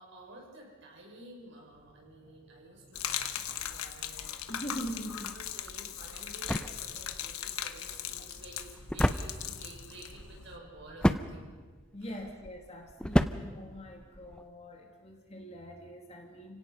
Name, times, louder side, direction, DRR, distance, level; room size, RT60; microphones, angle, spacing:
voice 1, 0.0-4.5 5.3-11.6 12.0-12.2, right 2 dB, 55° right, -1 dB, 6.1 m, -52 dB
sound 1, 1.7-11.0, equal, 75° right, 6.2 m, -62 dB
Gurgling / Liquid, 2.9-10.6, left 10 dB, 75° left, 1.2 m, -39 dB
voice 2, 4.5-5.3 11.9-16.6, equal, 30° left, 2 dB, 2.2 m, -42 dB
sound 2, 5.7-14.5, equal, 5° left, 0.5 m, -33 dB
30.0 x 17.5 x 5.5 m, 1.4 s
head